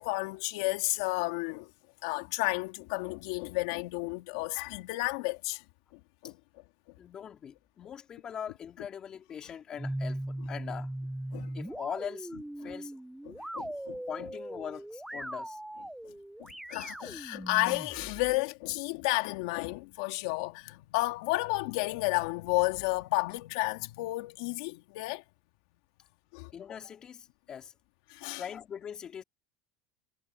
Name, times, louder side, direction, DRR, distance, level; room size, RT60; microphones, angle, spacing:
voice 1, 0.0-1.7 2.0-5.6 5.9-6.3 11.3-11.5 12.6-12.7 13.3-14.3 16.0-16.1 16.4-25.2 26.3-26.5 28.1-28.4, left 22 dB, 70° left, 2.2 m, -32 dB
voice 2, 7.0-10.9 11.5-12.4 12.6-13.0 14.1-15.6 26.5-27.7 28.3-29.2, left 8 dB, 25° left, 3.2 m, -41 dB
sound 1, 9.8-18.4, right 1 dB, 5° right, 0.7 m, -39 dB
supercardioid pair, 155°, 3 cm